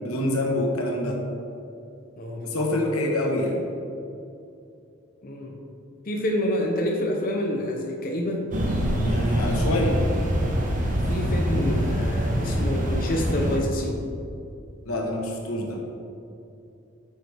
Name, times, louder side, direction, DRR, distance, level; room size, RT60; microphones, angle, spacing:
voice 1, 0.0-1.2 2.4-3.6 9.0-10.0 14.8-15.8, left 1 dB, 90° left, 0 dB, 1.3 m, -26 dB
voice 2, 2.2-2.6 5.2-5.6 6.1-8.5 11.0-14.0, left 1 dB, 40° left, 0 dB, 0.8 m, -28 dB
sound 1, 8.5-13.6, equal, 35° right, 1.0 m, -24 dB
9.2 x 6.4 x 3.5 m, 2.7 s
head